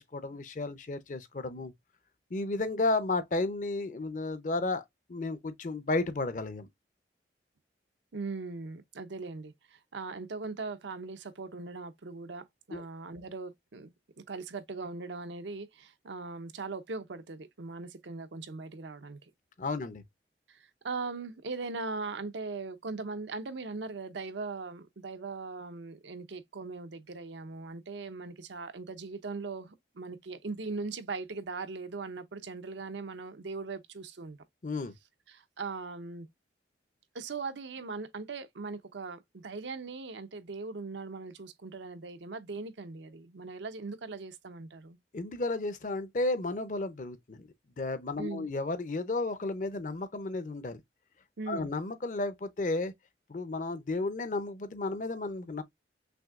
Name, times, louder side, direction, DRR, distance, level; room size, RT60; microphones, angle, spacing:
voice 1, 0.0-1.7 2.3-6.7 12.7-12.8 19.6-20.0 34.6-34.9 45.1-47.5 47.8-50.8 51.5-52.9 53.3-55.6, left 2 dB, 45° left, 0.5 m, -33 dB
voice 2, 8.1-19.3 20.5-34.4 35.3-36.3 37.1-45.0 48.2-48.5 51.4-51.7, right 3 dB, 85° right, 0.7 m, -40 dB
6.1 x 2.7 x 2.3 m
head